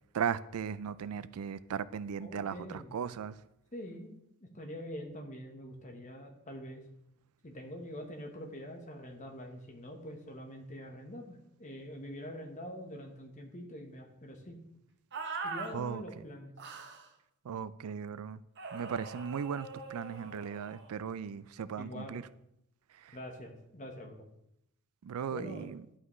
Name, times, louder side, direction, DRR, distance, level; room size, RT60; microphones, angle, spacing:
voice 1, 0.1-3.4 15.7-16.0 17.4-18.4 18.7-22.2 23.0-23.2 25.0-25.8, right 7 dB, 80° right, 0.4 m, -37 dB
voice 2, 2.2-3.0 3.7-4.1 4.4-6.8 7.4-14.6 15.4-16.5 21.8-22.2 23.1-24.2 25.3-25.7, equal, 35° left, 1.2 m, -45 dB
sound 1, 15.1-15.7 16.6-17.1 18.6-20.9, right 4 dB, 50° right, 0.8 m, -42 dB
11.5 x 5.7 x 3.2 m
head